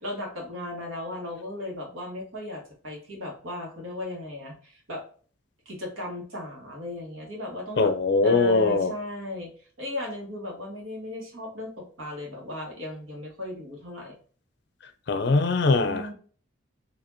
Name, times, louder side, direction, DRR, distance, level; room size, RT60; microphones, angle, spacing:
voice 1, 0.0-5.0 5.7-7.9 8.2-9.5 9.8-14.2 15.8-16.1, left 1 dB, 85° right, 1.6 m, -36 dB
voice 2, 7.8-8.9 15.1-16.0, left 3 dB, 60° left, 0.4 m, -21 dB
4.2 x 2.8 x 2.7 m
head